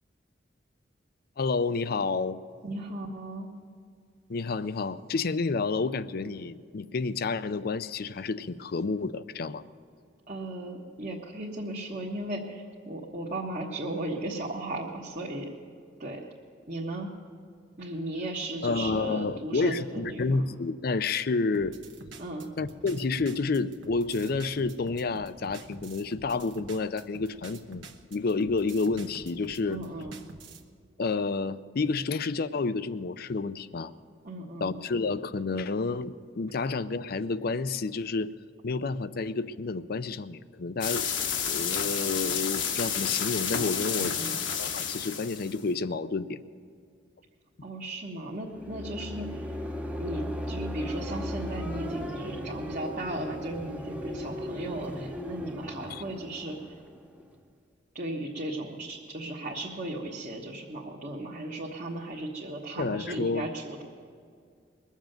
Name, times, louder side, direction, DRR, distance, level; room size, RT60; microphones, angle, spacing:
voice 1, 1.4-2.4 4.3-9.6 18.6-21.7 22.6-29.8 31.0-33.9 34.6-38.3 38.6-41.1 41.4-44.1 44.6-46.4 55.9-56.0 62.8-63.5, left 4 dB, 55° left, 15 dB, 0.5 m, -30 dB
voice 2, 2.6-3.5 10.3-15.5 16.0-16.3 16.7-17.1 17.8-20.4 22.2-22.5 29.7-30.2 34.2-34.8 44.0-44.4 47.6-49.6 50.0-56.6 57.9-63.8, right 1 dB, 45° right, -4 dB, 1.3 m, -36 dB
sound 1, 21.5-30.7, right 3 dB, 85° right, 1.2 m, -47 dB
sound 2, 40.8-45.6, left 7 dB, 75° left, 1.2 m, -30 dB
sound 3, 48.3-57.4, equal, 10° right, 0.8 m, -37 dB
21.5 x 7.3 x 9.1 m, 2.2 s
head